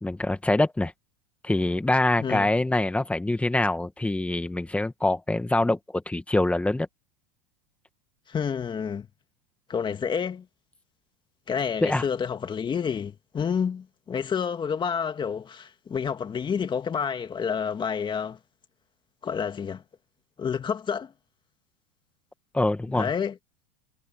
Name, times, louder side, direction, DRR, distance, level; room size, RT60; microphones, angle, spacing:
voice 1, 0.0-0.9 1.4-6.9 11.8-12.0 22.5-23.1, left 2 dB, 5° left, 2.0 m, -24 dB
voice 2, 2.2-2.5 8.3-9.1 9.7-10.5 11.5-18.4 19.2-19.8 20.4-21.1 22.9-23.3, left 7 dB, 25° left, 2.4 m, -29 dB
supercardioid pair, 120°, 20 cm